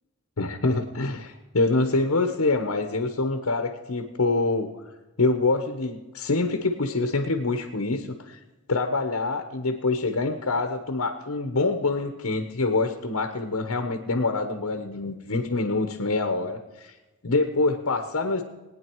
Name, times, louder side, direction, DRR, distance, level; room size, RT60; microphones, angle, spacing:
voice 1, 0.4-4.7 5.2-8.4 8.7-16.9 17.2-18.4, left 3 dB, 80° left, 6 dB, 1.1 m, -25 dB
19.0 x 9.7 x 4.6 m, 1.1 s
head